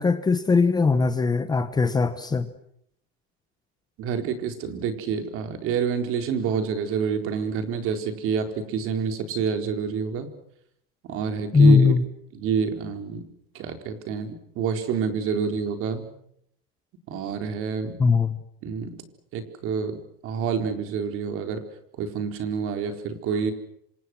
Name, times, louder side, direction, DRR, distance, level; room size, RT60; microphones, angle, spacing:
voice 1, 0.0-2.5 11.5-12.0 18.0-18.4, left 4 dB, 15° left, 10 dB, 1.1 m, -19 dB
voice 2, 4.0-10.3 11.0-11.9 12.3-13.3 13.5-16.1 17.1-18.0 18.6-19.0 19.3-21.6 22.0-23.5, right 6 dB, 45° right, 7 dB, 4.1 m, -28 dB
28.0 x 26.0 x 6.2 m, 0.71 s
cardioid pair, 155°, 30 cm